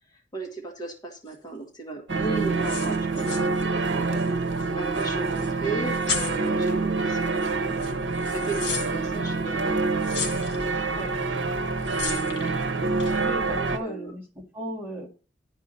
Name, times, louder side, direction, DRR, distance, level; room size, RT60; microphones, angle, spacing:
voice 1, 0.3-4.0 4.8-7.7 8.2-9.6 11.6-11.7 13.5-14.1, right 3 dB, 20° left, 1 dB, 1.5 m, -36 dB
sound 1, 1.3-1.4 2.5-4.3 4.6-4.7 4.9-5.5 5.9-6.5 7.4-7.5 7.8-8.9 10.0-10.7 11.9-12.6 13.0-13.2, left 6 dB, 65° left, 2.1 m, -34 dB
sound 2, 2.1-13.8, right 3 dB, 80° right, 0.9 m, -26 dB
voice 2, 13.2-15.1, right 1 dB, 15° right, -3 dB, 2.1 m, -36 dB
11.0 x 4.8 x 5.5 m, 0.38 s
head